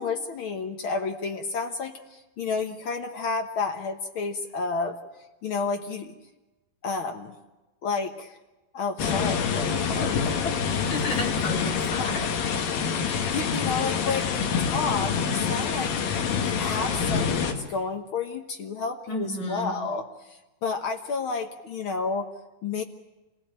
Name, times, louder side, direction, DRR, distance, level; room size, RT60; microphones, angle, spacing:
voice 1, 0.0-5.0 5.4-6.1 6.8-7.3 7.8-8.4 8.7-10.5 12.0-12.1 13.3-15.9 16.4-22.3 22.6-22.8, left 4 dB, 90° left, 5 dB, 1.1 m, -31 dB
sound 1, 9.0-17.5, left 6 dB, 70° left, 3.5 m, -26 dB
voice 2, 10.6-12.2 19.1-19.7, left 2 dB, 50° left, 1 dB, 5.2 m, -33 dB
27.0 x 18.0 x 8.9 m, 1.1 s
omnidirectional pair, 4.4 m